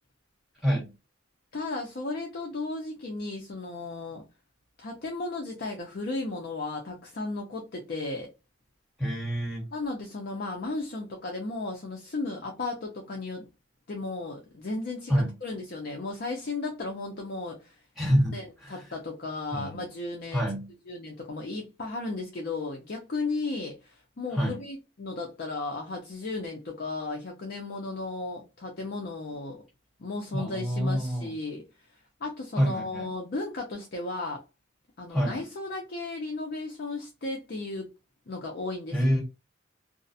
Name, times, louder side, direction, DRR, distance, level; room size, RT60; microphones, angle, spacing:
voice 1, 0.6-0.9 9.0-9.6 15.1-15.3 18.0-18.8 19.5-19.8 20.3-20.7 24.3-24.6 30.3-31.3 32.6-33.1 35.1-35.4 38.9-39.2, equal, ahead, 1.5 m, -27 dB
voice 2, 1.5-4.2 4.8-8.3 9.7-13.5 13.9-17.7 18.3-20.4 20.9-29.6 30.0-31.6 32.2-34.4 35.0-37.9 38.3-39.1, left 3 dB, 50° left, 0.5 m, -35 dB
2.4 x 2.0 x 2.6 m
head